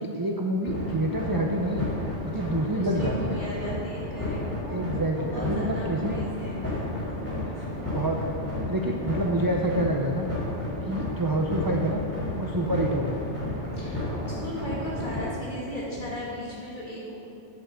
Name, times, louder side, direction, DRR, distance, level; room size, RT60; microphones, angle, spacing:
voice 1, 0.0-1.9 2.2-3.4 4.7-6.2 6.4-6.5 7.9-8.3 8.6-10.3 10.8-12.0 12.4-13.3, right 1 dB, 25° right, 1 dB, 0.5 m, -27 dB
sound 1, 0.7-15.2, left 1 dB, 10° left, 3.1 m, -32 dB
voice 2, 2.6-4.8 5.2-7.7 13.7-17.2, left 1 dB, 40° left, -6 dB, 2.9 m, -37 dB
8.2 x 8.1 x 7.8 m, 2.8 s
omnidirectional pair, 1.2 m